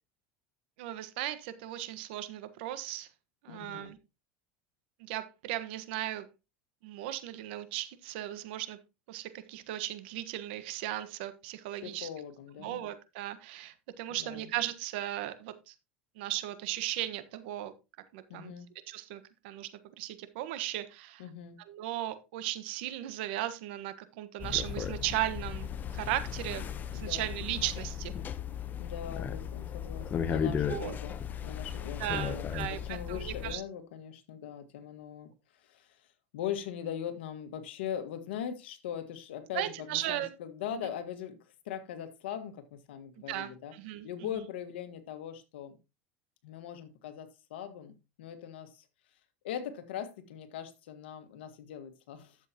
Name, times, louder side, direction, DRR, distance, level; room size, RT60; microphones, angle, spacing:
voice 1, 0.8-3.1 3.4-4.0 5.0-6.3 6.8-8.8 9.1-12.1 12.6-15.7 16.2-17.7 18.1-18.5 18.9-19.7 20.0-21.2 21.7-26.6 26.9-28.1 30.7-31.0 32.0-33.6 39.5-40.3 40.8-40.9 43.3-44.1, right 14 dB, 75° right, 1.3 m, -36 dB
voice 2, 3.5-3.9 11.8-12.8 14.1-14.5 18.3-18.7 21.2-21.6 26.9-27.4 28.8-31.2 31.4-35.3 35.6-36.0 36.3-41.4 41.6-43.7 44.0-45.8 46.4-48.8 49.4-52.4, left 9 dB, 85° left, 1.7 m, -41 dB
sound 1, 24.4-33.6, left 8 dB, 30° left, 0.9 m, -36 dB
11.5 x 7.5 x 2.9 m
supercardioid pair, 115°, 6 cm